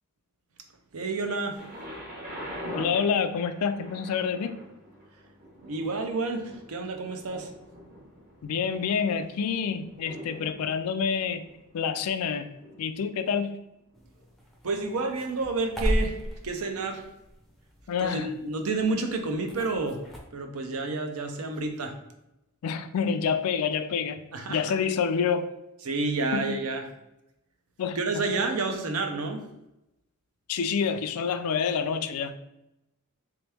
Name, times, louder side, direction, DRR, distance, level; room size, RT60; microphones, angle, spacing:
voice 1, 0.9-1.6 5.6-7.5 14.6-17.1 18.0-20.0 20.3-22.0 24.3-24.8 25.8-26.9 28.0-29.4, right 3 dB, 70° right, 5 dB, 0.6 m, -30 dB
Thunder, 1.5-13.4 14.2-14.3, equal, 40° right, 1.1 m, -44 dB
voice 2, 2.7-4.6 8.4-11.4 11.7-12.5 12.8-13.6 17.9-18.3 22.6-24.2 24.5-25.5 26.3-26.6 27.8-28.0 30.5-32.4, left 6 dB, 75° left, 10 dB, 0.4 m, -27 dB
sound 1, 13.9-20.2, equal, ahead, 0.5 m, -35 dB
3.4 x 3.0 x 3.3 m, 0.90 s
head